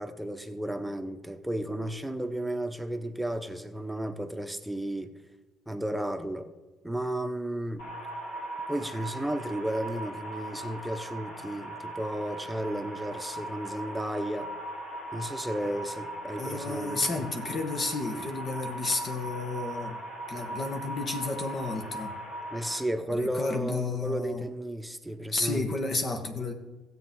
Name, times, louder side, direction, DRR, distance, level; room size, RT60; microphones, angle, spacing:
voice 1, 0.0-5.1 5.7-6.5 6.8-7.8 8.7-14.5 15.1-17.0 22.5-25.7, right 1 dB, 5° right, 1.1 m, -33 dB
sound 1, 7.8-22.8, right 1 dB, 70° left, 2.7 m, -39 dB
voice 2, 16.4-20.0 20.3-22.1 23.2-24.4 25.3-26.5, left 3 dB, 45° left, 1.8 m, -31 dB
16.0 x 7.9 x 3.9 m
hypercardioid pair, 55°, 0 cm